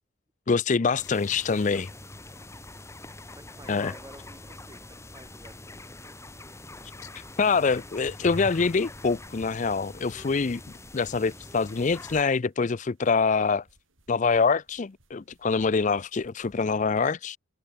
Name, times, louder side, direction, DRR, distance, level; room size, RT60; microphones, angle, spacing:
voice 1, 0.5-1.9 3.7-3.9 7.4-10.6 10.9-13.6 14.1-17.4, left 4 dB, 40° left, 0.5 m, -25 dB
sound 1, 1.0-12.2, left 1 dB, 15° left, 3.4 m, -44 dB
voice 2, 3.4-6.1, right 1 dB, 20° right, 2.6 m, -52 dB
sound 2, 7.9-16.6, right 1 dB, 85° right, 7.5 m, -62 dB
head